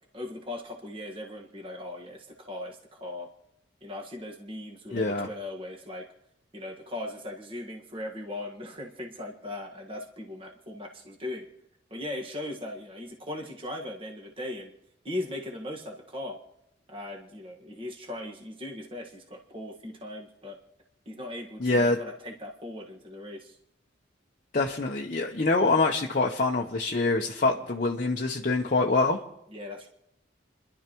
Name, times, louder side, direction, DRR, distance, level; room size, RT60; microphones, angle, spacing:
voice 1, 0.1-3.3 3.8-6.1 6.5-11.5 11.9-14.7 15.0-16.4 16.9-20.6 21.0-23.6 29.5-29.9, left 1 dB, 30° right, -1 dB, 1.6 m, -38 dB
voice 2, 4.9-5.3 21.6-22.0 24.5-29.2, left 3 dB, 45° left, 0 dB, 0.8 m, -25 dB
29.5 x 11.5 x 3.0 m, 0.81 s
head